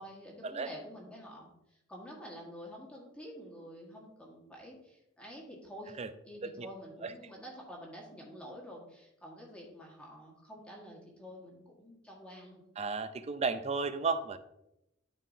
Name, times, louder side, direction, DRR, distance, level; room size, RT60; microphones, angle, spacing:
voice 1, 0.0-6.0 6.2-12.6, equal, 5° left, -3 dB, 1.6 m, -48 dB
voice 2, 12.8-14.4, right 4 dB, 35° right, 11 dB, 0.5 m, -33 dB
12.0 x 4.5 x 2.7 m, 0.86 s
head